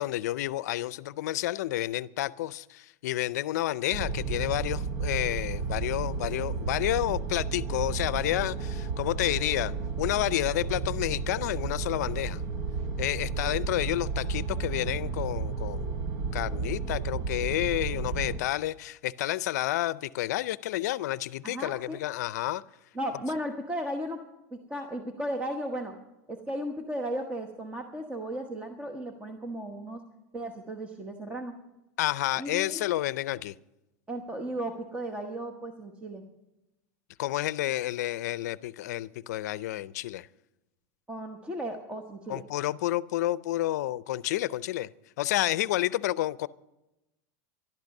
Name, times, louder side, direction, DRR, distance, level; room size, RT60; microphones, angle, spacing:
voice 1, 0.0-12.4 13.0-16.1 16.3-22.6 32.0-33.5 37.2-40.3 42.3-44.9 45.2-46.5, left 15 dB, 80° left, 0.5 m, -30 dB
sound 1, 3.9-18.4, right 4 dB, 55° right, 1.0 m, -32 dB
voice 2, 21.4-22.0 22.9-24.2 24.5-25.9 26.3-30.0 30.3-31.5 32.4-32.8 34.1-36.2 41.1-42.4, right 1 dB, 15° right, 1.1 m, -35 dB
13.5 x 12.0 x 6.5 m
supercardioid pair, 140°, 9 cm